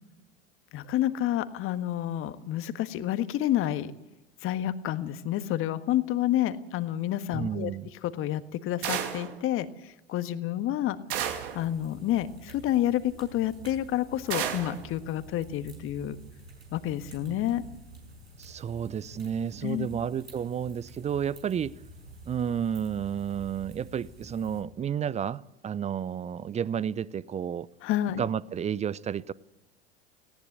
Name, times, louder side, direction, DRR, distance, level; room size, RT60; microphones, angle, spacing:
voice 1, 0.7-3.9 4.4-7.7 8.0-11.0 11.3-16.2 16.7-17.6 19.6-19.9 27.8-28.2, left 12 dB, 45° left, 1.5 m, -29 dB
voice 2, 7.3-7.9 18.4-21.8 22.3-27.7 28.2-29.3, right 8 dB, 20° right, 0.6 m, -31 dB
sound 1, 8.8-9.4 11.1-11.6 14.3-14.8, right 9 dB, 60° right, 2.8 m, -31 dB
sound 2, 11.1-24.6, right 2 dB, 85° right, 5.2 m, -49 dB
19.0 x 17.5 x 8.1 m
figure-of-eight pair, 75°, 31 cm